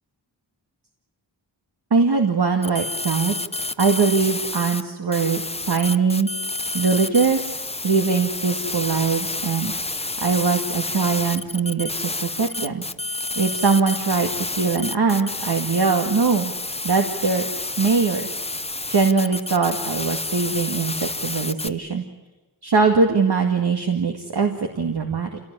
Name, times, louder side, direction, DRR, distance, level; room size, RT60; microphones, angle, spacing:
voice 1, 1.9-3.4 3.8-5.4 5.7-6.3 6.7-7.5 7.8-16.5 16.8-17.4 17.8-18.3 18.9-20.9 21.2-22.0 22.6-25.4, right 5 dB, 60° right, 3 dB, 2.2 m, -21 dB
sound 1, 2.6-4.8 5.1-21.7, left 2 dB, 15° left, 0.8 m, -29 dB
27.0 x 18.0 x 9.9 m, 1.1 s
wide cardioid pair, 110°, 43 cm